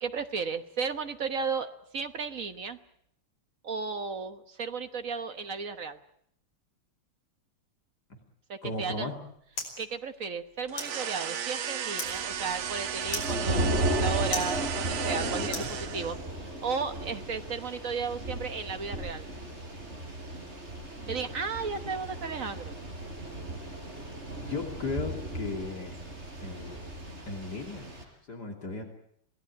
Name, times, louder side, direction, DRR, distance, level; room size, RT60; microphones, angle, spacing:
voice 1, 0.0-2.8 3.6-6.0 8.5-9.1 9.8-15.6 15.9-16.2 16.4-19.2 21.1-22.7, right 5 dB, 45° right, 9 dB, 1.3 m, -34 dB
voice 2, 8.6-9.1 15.3-15.7 21.0-21.4 24.4-26.0 26.4-26.8 27.3-27.9 28.3-28.8, left 3 dB, 45° left, 2 dB, 3.5 m, -36 dB
sound 1, 8.7-16.3, left 2 dB, 75° left, 6.2 m, -42 dB
sound 2, 10.7-16.3, right 8 dB, 70° right, 2.1 m, -35 dB
Thunder / Rain, 12.0-28.0, right 1 dB, 30° right, 4.8 m, -35 dB
27.0 x 18.0 x 8.5 m, 0.70 s
omnidirectional pair, 2.4 m